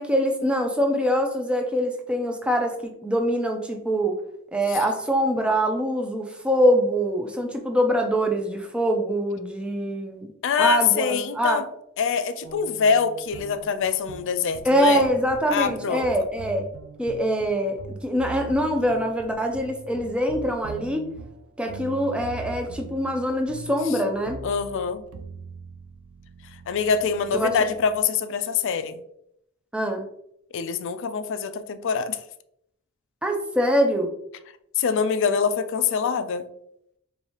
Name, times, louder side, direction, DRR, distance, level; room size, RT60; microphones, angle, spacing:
voice 1, 0.0-2.7 3.0-4.2 4.5-10.3 10.6-11.6 14.6-16.7 17.0-21.1 21.6-24.4 27.3-27.5 29.7-30.1 33.2-34.1, equal, 5° right, 3 dB, 0.5 m, -24 dB
voice 2, 10.4-11.6 12.0-15.0 15.5-16.3 24.4-25.0 26.7-29.0 30.5-32.2 34.8-36.4, left 6 dB, 60° left, 11 dB, 0.4 m, -24 dB
sound 1, 12.4-28.0, right 4 dB, 80° right, 0.4 m, -42 dB
4.7 x 2.7 x 2.9 m, 0.75 s
head